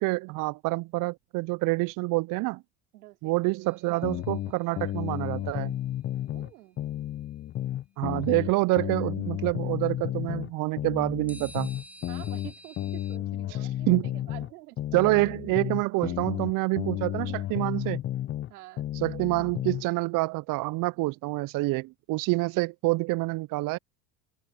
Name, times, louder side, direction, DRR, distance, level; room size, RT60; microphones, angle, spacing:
voice 1, 0.0-2.6 3.2-5.7 8.0-11.7 13.9-14.1 14.9-18.0 19.0-23.8, right 22 dB, 50° right, 0.5 m, -27 dB
voice 2, 2.9-3.5 6.3-6.9 8.1-9.1 12.1-15.2 16.0-16.5 18.5-18.9 21.0-21.2, right 19 dB, 85° right, 3.4 m, -49 dB
sound 1, 3.6-4.9 11.3-13.2, right 1 dB, 5° right, 0.7 m, -50 dB
sound 2, 4.0-6.5 6.8-10.5 10.8-14.5 14.8-18.5 18.8-19.8, left 13 dB, 30° left, 0.4 m, -32 dB
hypercardioid pair, 85°, 44 cm